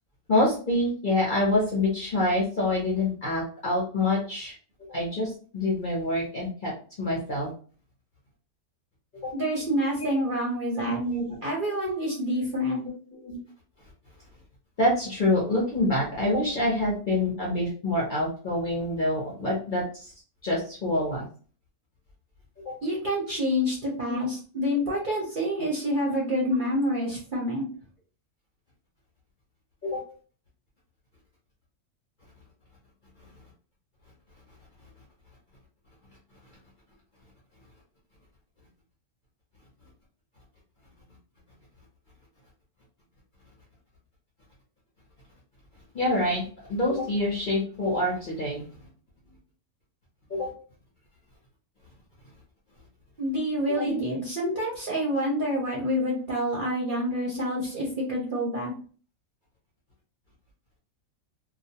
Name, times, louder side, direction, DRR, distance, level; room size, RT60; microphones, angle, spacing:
voice 1, 0.3-4.5 4.9-6.7 7.0-7.5 9.2-9.3 10.0-10.1 10.7-11.4 13.1-13.4 14.8-20.1 20.4-21.3 22.7-22.8 24.1-24.2 29.8-30.0 45.9-48.6 50.3-50.5 53.7-54.0, left 1 dB, 50° left, -4 dB, 0.7 m, -26 dB
voice 2, 9.3-11.0 11.4-12.8 22.8-27.6 53.2-58.7, equal, 50° right, -4 dB, 0.7 m, -27 dB
2.4 x 2.1 x 2.7 m, 0.40 s
omnidirectional pair, 1.5 m